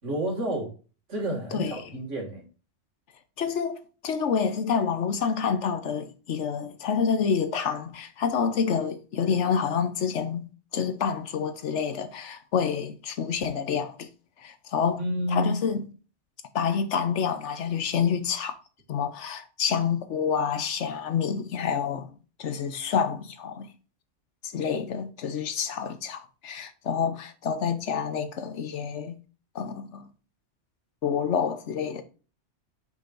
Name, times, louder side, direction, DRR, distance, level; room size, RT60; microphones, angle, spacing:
voice 1, 0.0-0.7 1.1-2.4 15.0-15.6, right 1 dB, 85° right, 2.5 m, -29 dB
voice 2, 1.5-1.8 3.4-10.5 10.7-14.1 14.4-15.0 15.3-15.8 16.5-18.6 18.9-22.1 22.4-23.7 24.4-29.2 29.5-30.1 31.0-32.0, left 6 dB, 75° left, 1.2 m, -28 dB
6.6 x 5.9 x 2.6 m
omnidirectional pair, 1.2 m